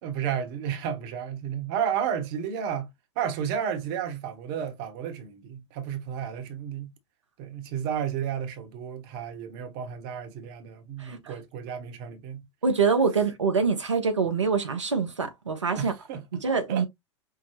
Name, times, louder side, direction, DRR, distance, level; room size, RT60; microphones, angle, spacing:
voice 1, 0.0-2.9 3.1-6.9 7.4-12.5 15.8-16.4 16.7-16.9, right 8 dB, 50° right, 1.1 m, -32 dB
voice 2, 11.0-11.3 12.6-15.9 16.4-16.9, right 5 dB, 85° right, 0.9 m, -25 dB
5.8 x 2.2 x 2.9 m
figure-of-eight pair, 95°, 15 cm